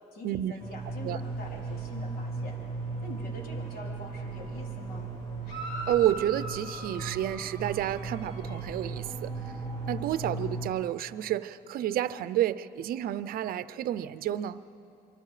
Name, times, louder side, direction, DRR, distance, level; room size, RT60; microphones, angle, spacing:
voice 1, 0.1-2.5 3.0-5.1, left 2 dB, 65° left, -1 dB, 3.6 m, -44 dB
sound 1, 0.6-10.7, right 3 dB, 30° left, 7.1 m, -37 dB
sound 2, 5.5-8.7, right 1 dB, 85° left, 5.5 m, -41 dB
voice 2, 5.9-9.5 9.9-14.6, right 12 dB, 65° right, 15 dB, 0.6 m, -30 dB
25.5 x 25.0 x 5.0 m, 2.7 s
cardioid pair, 130°, 16 cm